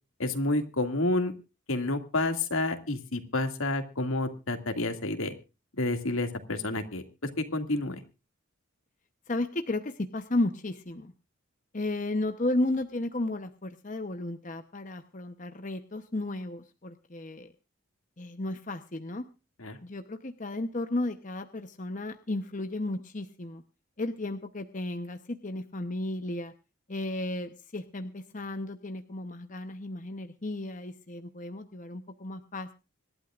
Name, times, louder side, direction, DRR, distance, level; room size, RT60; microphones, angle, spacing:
voice 1, 0.2-1.3 1.7-5.3 5.8-8.0 19.6-19.8, left 2 dB, 80° left, 6 dB, 2.3 m, -29 dB
voice 2, 9.3-11.1 11.7-17.5 18.2-19.2 19.8-23.6 24.0-26.5 26.9-32.7, left 2 dB, 35° left, 7 dB, 0.9 m, -33 dB
26.0 x 12.0 x 2.5 m, 0.30 s
head